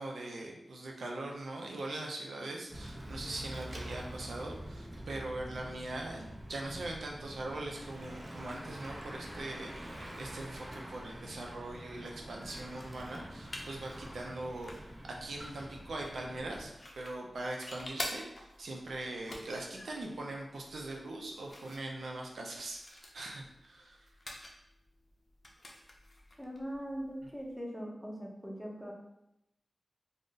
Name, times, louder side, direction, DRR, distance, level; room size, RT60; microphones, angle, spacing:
voice 1, 0.0-14.7 15.2-24.1, right 2 dB, 90° right, 0 dB, 0.4 m, -41 dB
Bicycle / Mechanisms, 2.7-16.7, right 1 dB, 35° right, 0.5 m, -46 dB
sound 1, 12.4-27.5, left 1 dB, 50° left, 0.5 m, -49 dB
voice 2, 26.4-28.9, equal, 5° right, -1 dB, 0.7 m, -41 dB
2.5 x 2.0 x 3.7 m, 0.84 s
wide cardioid pair, 60°, 0 cm